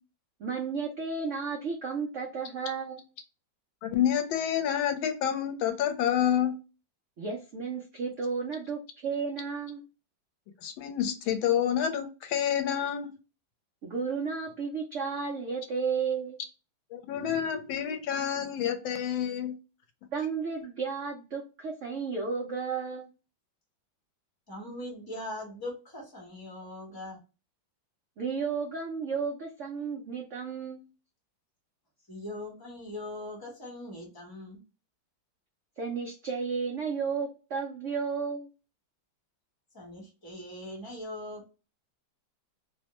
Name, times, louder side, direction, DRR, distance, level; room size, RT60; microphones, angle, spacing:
voice 1, 0.4-3.0 7.2-9.9 13.8-16.4 20.1-23.1 28.2-30.9 35.8-38.5, right 5 dB, 80° right, -1 dB, 0.6 m, -33 dB
voice 2, 3.8-6.6 10.6-13.1 16.9-19.5, left 9 dB, 85° left, 7 dB, 1.4 m, -28 dB
voice 3, 24.5-27.2 32.1-34.6 39.7-41.6, left 1 dB, 20° left, -2 dB, 0.7 m, -41 dB
3.3 x 2.1 x 2.9 m, 0.31 s
omnidirectional pair, 2.1 m